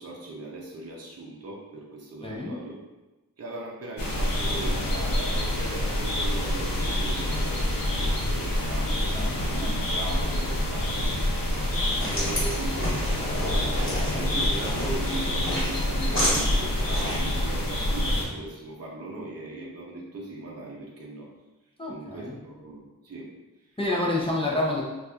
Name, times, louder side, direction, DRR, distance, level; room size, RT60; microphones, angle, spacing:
voice 1, 0.0-2.8 3.4-11.2 12.0-21.3 21.9-23.3 23.6-23.7, right 2 dB, 50° right, -3 dB, 0.6 m, -39 dB
voice 2, 2.2-2.6 9.1-9.9 11.7-12.1 21.8-22.4 23.8-24.8, left 2 dB, 15° left, -4 dB, 0.5 m, -29 dB
sound 1, 4.0-18.3, left 1 dB, 85° left, 0.7 m, -27 dB
sound 2, 11.6-17.3, left 1 dB, 40° left, 1.4 m, -32 dB
4.0 x 2.4 x 2.3 m, 1.1 s
wide cardioid pair, 80°, 33 cm